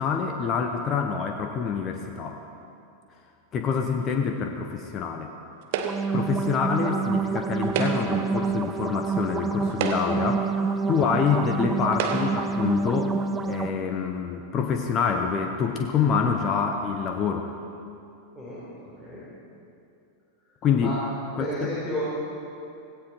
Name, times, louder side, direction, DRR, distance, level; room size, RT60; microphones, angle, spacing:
voice 1, 0.0-2.4 3.5-5.3 6.1-10.5 10.9-13.2 13.4-17.5 20.6-21.0 21.4-21.7, left 6 dB, 30° left, 4 dB, 1.0 m, -26 dB
sound 1, 5.7-13.7, right 5 dB, 15° right, 0.6 m, -28 dB
sound 2, 5.7-6.3 7.6-8.3 9.1-9.2 9.7-10.4 11.3-11.4 11.9-12.5, right 7 dB, 50° right, 1.3 m, -30 dB
voice 2, 21.4-22.0, left 1 dB, ahead, -10 dB, 4.3 m, -31 dB
17.0 x 16.5 x 4.5 m, 2.6 s
figure-of-eight pair, 90°, 0 cm